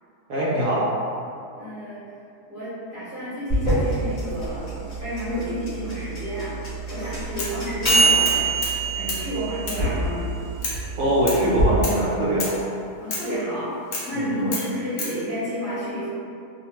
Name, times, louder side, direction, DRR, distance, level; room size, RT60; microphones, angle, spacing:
voice 1, 0.3-0.9 11.0-12.5 14.1-14.5, right 1 dB, 70° right, -7 dB, 0.8 m, -22 dB
voice 2, 1.6-2.0 2.5-8.6 8.9-10.3 13.0-13.7 14.0-16.1, equal, 5° right, -16 dB, 0.8 m, -31 dB
sound 1, 3.5-11.7, right 2 dB, 30° left, 0.9 m, -24 dB
sound 2, 7.4-7.6 7.9-8.8 9.1-9.2 9.7-9.8 10.6-10.8 11.3-11.4 11.8-12.0 12.4-12.6 13.1-13.3 13.9-14.1 14.5-15.2, left 3 dB, 65° left, 0.6 m, -30 dB
2.7 x 2.1 x 3.0 m, 2.6 s
omnidirectional pair, 1.7 m